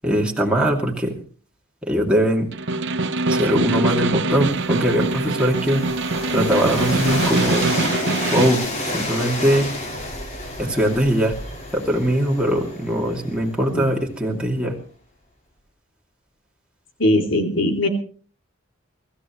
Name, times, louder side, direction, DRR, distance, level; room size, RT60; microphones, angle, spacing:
voice 1, 0.0-1.2 1.9-2.5 3.3-5.8 6.3-7.7 8.3-8.6 8.9-9.7 10.6-11.3 11.7-14.8, equal, 5° right, -1 dB, 2.5 m, -21 dB
Snare drum, 2.5-8.7, right 3 dB, 60° right, 0.9 m, -23 dB
Train, 4.3-14.2, left 1 dB, 35° left, 4.4 m, -30 dB
voice 2, 17.0-17.9, left 1 dB, 65° left, 3 dB, 2.9 m, -19 dB
24.5 x 14.5 x 3.2 m, 0.43 s
head